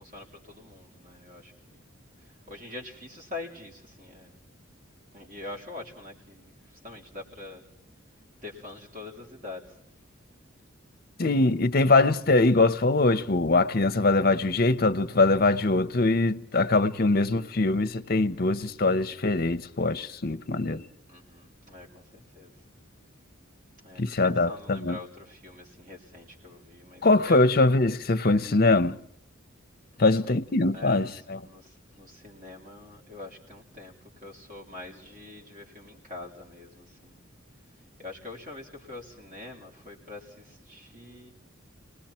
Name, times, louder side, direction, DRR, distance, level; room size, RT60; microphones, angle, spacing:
voice 1, 0.0-1.8 2.5-4.4 5.1-6.5 6.8-7.6 8.4-9.6 21.1-22.5 23.8-27.4 29.9-30.3 30.7-31.1 31.4-33.9 34.2-37.2 38.0-41.3, left 2 dB, 40° right, 3.9 m, -44 dB
voice 2, 11.2-20.8 24.0-25.0 27.0-29.0 30.0-31.4, left 2 dB, 45° left, 0.8 m, -22 dB
29.5 x 20.0 x 4.4 m
head